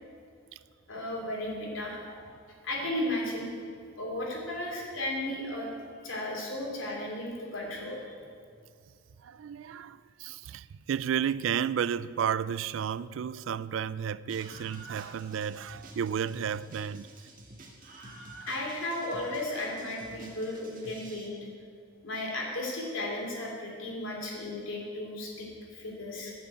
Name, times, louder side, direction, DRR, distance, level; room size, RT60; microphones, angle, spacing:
voice 1, 0.9-2.3 2.6-3.5 4.0-5.7 6.0-8.0 18.5-21.5 22.0-26.3, left 1 dB, 80° left, 2.9 m, -35 dB
voice 2, 9.2-17.3, right 8 dB, 80° right, 0.3 m, -32 dB
Screaming, 14.3-21.3, right 2 dB, 45° right, 1.6 m, -49 dB
12.5 x 5.9 x 8.4 m
head